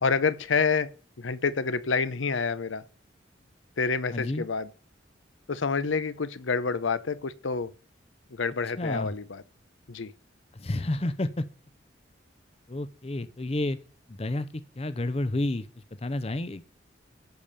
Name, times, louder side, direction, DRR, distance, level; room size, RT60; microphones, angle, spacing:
voice 1, 0.0-0.9 1.2-2.8 3.8-4.7 5.5-7.7 8.3-9.4 9.9-10.1, left 5 dB, 85° left, 0.8 m, -28 dB
voice 2, 4.1-4.4 8.8-9.1 10.5-11.5 12.7-13.8 14.1-16.6, left 1 dB, 30° left, 0.6 m, -30 dB
14.0 x 5.1 x 6.8 m
head